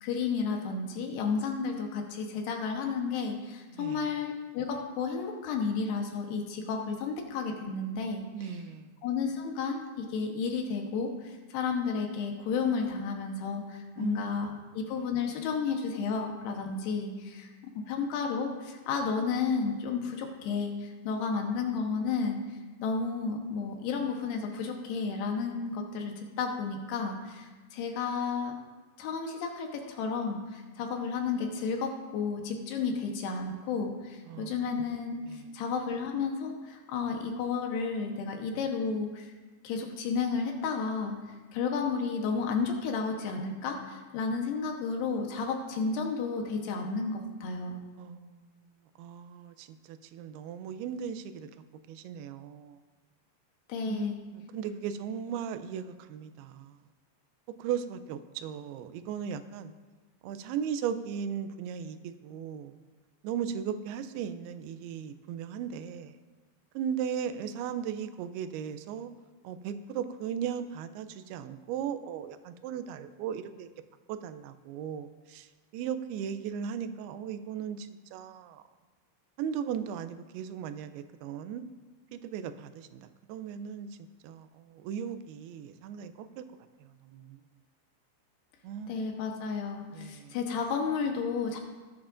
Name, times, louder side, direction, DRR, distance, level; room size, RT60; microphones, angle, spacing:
voice 1, 0.0-8.5 9.0-14.5 14.7-17.5 17.9-22.4 22.8-28.5 29.0-39.3 39.6-41.2 41.5-47.8 53.7-54.2 88.9-91.6, left 5 dB, 80° left, 2 dB, 3.0 m, -32 dB
voice 2, 3.8-4.1 8.3-8.9 14.0-14.3 34.3-34.5 35.3-35.4 48.0-48.4 49.0-51.5 51.9-52.8 53.9-56.8 57.6-59.7 60.2-62.8 63.2-66.2 66.8-69.1 69.4-73.7 74.1-75.5 75.7-78.6 79.4-81.6 82.1-83.9 84.2-86.4 87.1-87.4 88.6-88.9 89.9-90.4, right 8 dB, 80° right, 10 dB, 2.5 m, -37 dB
18.0 x 8.5 x 2.5 m, 1.3 s
omnidirectional pair, 4.7 m